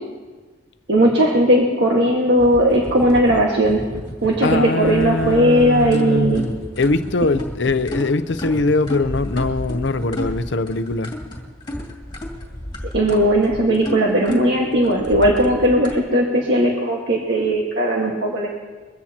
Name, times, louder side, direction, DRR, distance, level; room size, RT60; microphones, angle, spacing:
voice 1, 0.9-3.8 4.2-6.5 12.9-18.6, right 1 dB, 60° right, -2 dB, 1.8 m, -17 dB
sound 1, 2.3-16.0, left 1 dB, 25° left, 2.4 m, -32 dB
voice 2, 4.4-11.1, left 3 dB, 65° left, 11 dB, 0.6 m, -22 dB
22.5 x 15.5 x 3.0 m, 1.3 s
head